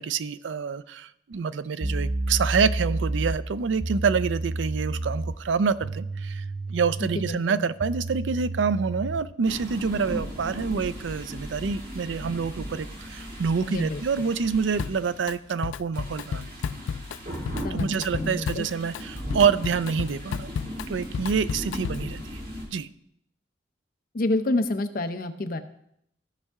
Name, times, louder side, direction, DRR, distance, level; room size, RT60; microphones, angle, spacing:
voice 1, 0.0-16.7 17.7-20.5 20.9-22.4 22.7-22.9, right 5 dB, 85° right, 15 dB, 0.4 m, -27 dB
sound 1, 1.3-1.4 1.8-9.3, right 2 dB, 20° right, 0.4 m, -31 dB
voice 2, 7.1-7.7 13.6-14.0 17.6-17.9 18.2-18.6 21.7-22.2 24.1-25.6, left 2 dB, 50° left, 8 dB, 0.7 m, -29 dB
sound 2, 9.4-15.4 15.9-22.7, equal, 50° right, 2.5 m, -37 dB
Drum kit, 14.8-15.3 15.6-22.2, left 6 dB, 85° left, 0.3 m, -33 dB
14.5 x 5.5 x 3.6 m, 0.74 s
head